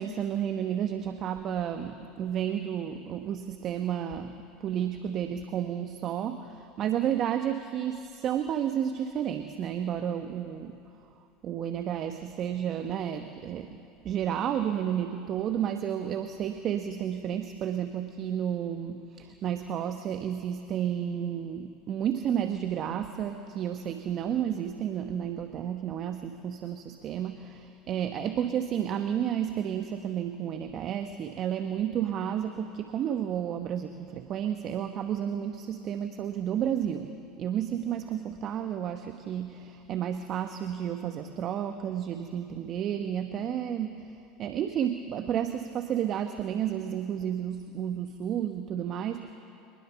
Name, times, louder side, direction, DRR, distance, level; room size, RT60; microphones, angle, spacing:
voice 1, 0.0-10.8 11.4-13.8 14.0-49.3, right 9 dB, 45° right, 8 dB, 1.1 m, -31 dB
23.5 x 21.0 x 7.0 m, 2.6 s
hypercardioid pair, 80°, 0 cm